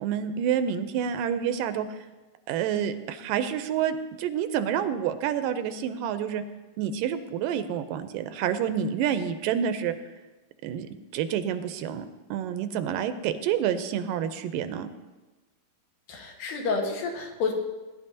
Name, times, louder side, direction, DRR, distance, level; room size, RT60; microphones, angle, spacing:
voice 1, 0.0-2.0 2.5-6.4 6.8-9.9 10.6-10.9 11.1-12.1 12.3-14.9, right 9 dB, 85° right, 10 dB, 2.3 m, -28 dB
voice 2, 16.1-17.5, left 4 dB, 85° left, 1 dB, 3.2 m, -29 dB
20.5 x 11.0 x 2.8 m, 1.2 s
omnidirectional pair, 3.9 m